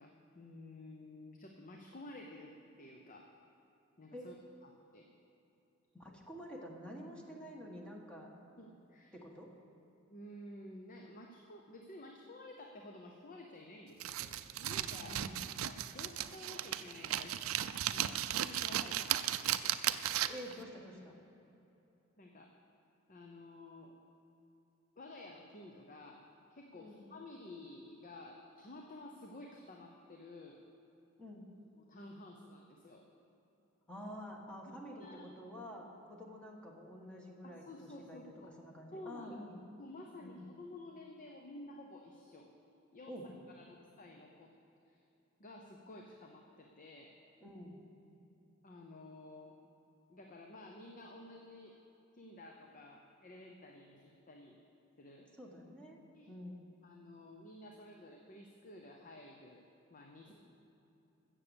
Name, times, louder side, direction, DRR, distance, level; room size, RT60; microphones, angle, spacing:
voice 1, 0.0-3.3 4.0-4.4 4.6-5.1 8.6-9.2 10.1-15.3 15.6-17.5 17.9-19.8 22.2-22.5 23.1-24.0 25.0-30.6 31.7-33.0 34.7-35.3 37.4-38.6 38.9-39.4 39.8-42.5 42.9-43.2 43.6-44.5 44.8-45.0 45.4-47.2 48.6-49.6 50.1-51.8 52.1-54.6 55.0-55.3 56.1-56.3 56.8-59.7 59.9-60.3, left 1 dB, 40° left, 2 dB, 0.8 m, -52 dB
voice 2, 5.9-8.3 9.1-9.5 15.0-15.6 20.3-21.2 26.7-27.1 31.2-31.4 33.9-37.6 38.1-38.2 38.6-39.6 40.2-40.4 43.1-43.3 47.4-47.8 55.4-56.0 56.3-56.7 60.3-60.4, equal, 5° left, -1 dB, 1.5 m, -48 dB
sound 1, 14.0-20.5, right 12 dB, 75° right, 0.4 m, -36 dB
13.5 x 7.5 x 7.0 m, 2.9 s
head